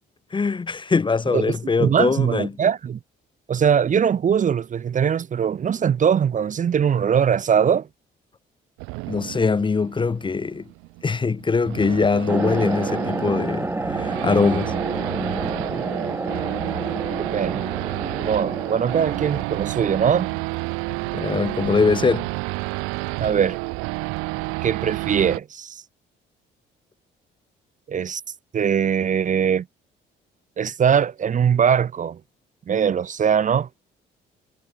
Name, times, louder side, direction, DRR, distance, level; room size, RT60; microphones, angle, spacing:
voice 1, 0.3-2.5 9.1-10.6 11.0-14.7 21.1-22.3, left 4 dB, 25° left, 0.6 m, -22 dB
voice 2, 1.3-3.0 3.5-7.9 15.8-15.9 17.2-17.6 18.1-20.3 23.2-23.6 24.6-25.8 27.9-28.2 28.5-29.6 30.6-32.2 32.7-33.7, right 7 dB, 40° right, 0.6 m, -21 dB
Race car auto racing / Idling / Accelerating revving vroom, 8.8-25.4, right 28 dB, 85° right, 0.5 m, -30 dB
sound 1, 12.3-19.5, right 2 dB, 10° right, 1.5 m, -29 dB
supercardioid pair, 70°, 21 cm